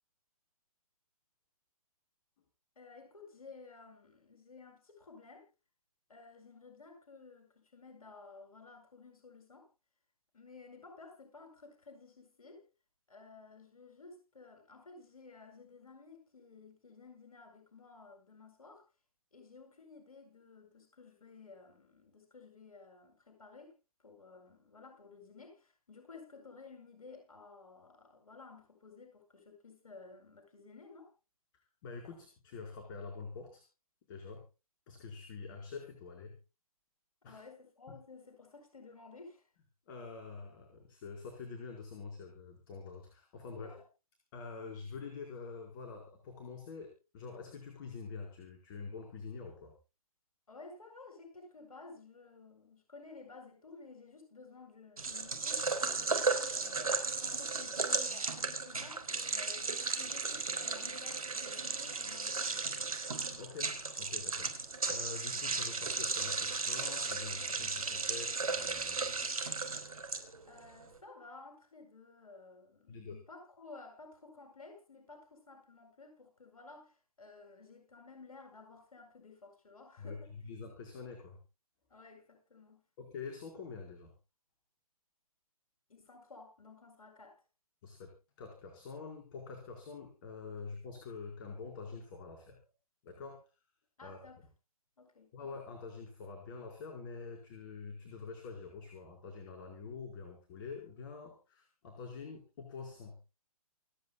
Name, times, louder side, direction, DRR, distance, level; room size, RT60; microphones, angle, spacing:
voice 1, 2.8-5.4 6.1-9.7 10.3-12.6 13.1-18.8 19.3-23.7 24.0-31.1 37.2-39.4 43.5-43.8 50.5-62.7 70.5-80.3 81.9-82.8 85.9-87.3 94.0-94.5 95.0-95.3, left 4 dB, 70° left, 4 dB, 8.0 m, -54 dB
voice 2, 31.8-33.6 34.1-34.4 34.9-36.3 37.2-37.4 37.9-38.0 39.9-43.8 44.3-49.7 63.3-69.2 72.9-73.2 80.0-81.4 83.0-84.1 87.8-88.1 88.4-92.6 93.0-93.4 94.0-94.2 95.3-103.1, left 4 dB, 35° left, 2 dB, 4.9 m, -46 dB
sound 1, 55.0-70.6, right 4 dB, 70° right, 4.2 m, -35 dB
28.5 x 10.0 x 2.3 m, 0.32 s
figure-of-eight pair, 135°, 19 cm